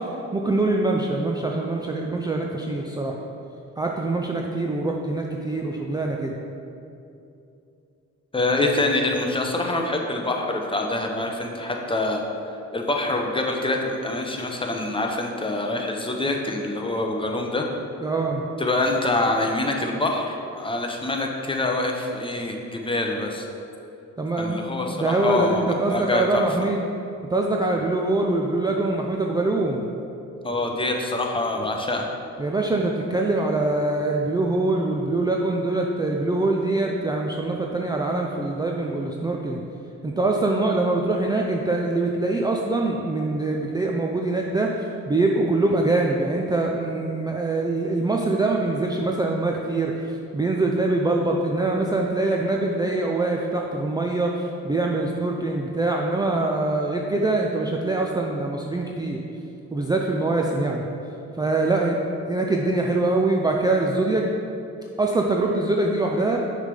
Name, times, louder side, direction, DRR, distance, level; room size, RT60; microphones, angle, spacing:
voice 1, 0.0-3.2 3.8-6.3 18.0-18.4 24.2-26.8 27.3-29.8 32.4-39.6 40.0-59.2 59.7-60.8 61.4-62.0 62.3-64.3 65.0-66.4, right 2 dB, 15° right, 0 dB, 0.4 m, -24 dB
voice 2, 8.3-12.3 12.7-17.7 18.6-23.5 24.4-26.7 30.4-32.1, left 2 dB, 15° left, 2 dB, 0.7 m, -25 dB
6.3 x 3.4 x 5.3 m, 2.7 s
cardioid pair, 90°, 30 cm